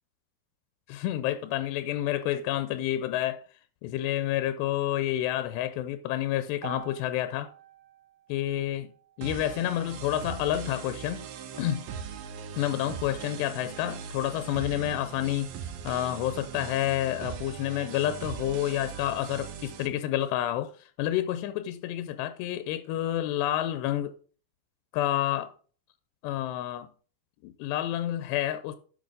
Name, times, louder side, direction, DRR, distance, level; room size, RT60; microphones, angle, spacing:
voice 1, 0.9-3.4 3.8-7.5 8.3-8.9 9.2-11.3 11.6-11.8 12.6-15.5 15.8-24.1 24.9-25.5 26.2-26.9 27.4-28.8, left 13 dB, 90° left, 2.8 m, -29 dB
sound 1, 6.6-10.8, right 10 dB, 90° right, 3.5 m, -49 dB
sound 2, 9.2-19.9, right 8 dB, 75° right, 2.3 m, -40 dB
10.5 x 6.4 x 3.8 m
omnidirectional pair, 4.8 m